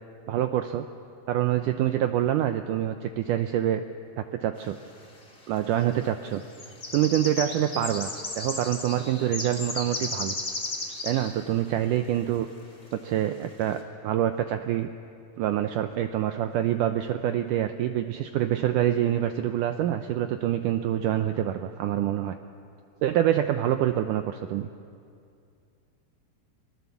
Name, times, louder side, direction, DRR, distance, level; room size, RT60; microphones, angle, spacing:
voice 1, 0.3-0.9 1.3-3.8 4.2-4.8 5.5-6.4 6.9-10.4 11.0-12.5 12.9-14.9 15.4-22.4 23.0-24.7, right 11 dB, 90° right, 8 dB, 1.8 m, -26 dB
sound 1, 4.9-5.0 5.8-6.0 6.3-11.3 11.6-11.7 12.1-12.2 13.0-13.1 13.5-13.7, left 2 dB, 25° left, 2.0 m, -34 dB
27.5 x 19.5 x 7.0 m, 2.4 s
omnidirectional pair, 4.5 m